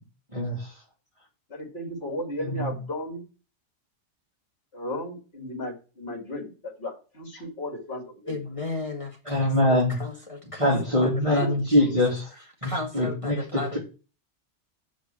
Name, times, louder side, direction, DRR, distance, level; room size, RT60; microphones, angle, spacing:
voice 1, 0.3-0.8 2.4-2.7 7.3-7.4 9.2-10.0 10.6-13.8, left 1 dB, 25° right, -5 dB, 3.1 m, -24 dB
voice 2, 1.5-3.2 4.7-8.5 10.9-11.0 11.8-11.9, left 1 dB, 60° left, 2 dB, 2.9 m, -35 dB
voice 3, 8.3-10.7 11.0-12.0 12.6-13.8, left 3 dB, 30° left, 0 dB, 1.7 m, -35 dB
8.6 x 5.3 x 7.5 m, 0.33 s
omnidirectional pair, 1.2 m